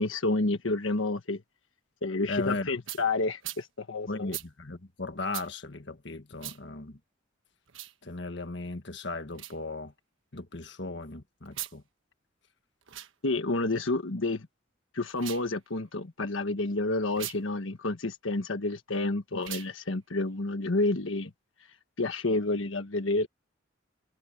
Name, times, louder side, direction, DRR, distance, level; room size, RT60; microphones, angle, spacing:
voice 1, 0.0-1.4 2.0-4.3 13.2-14.5 14.9-21.3 22.0-23.3, left 2 dB, 80° left, 1.4 m, -29 dB
voice 2, 2.3-2.7 4.1-7.0 8.0-9.9 10.3-11.8, left 2 dB, 60° left, 1.6 m, -36 dB
sound 1, 2.9-3.0 3.4-3.6 4.3-4.5 5.3-5.5 6.4-6.6 7.7-7.9 9.3-9.6 11.5-11.8 12.8-13.1 15.1-15.5 17.1-17.4 19.4-19.7, right 13 dB, 75° right, 1.3 m, -39 dB
head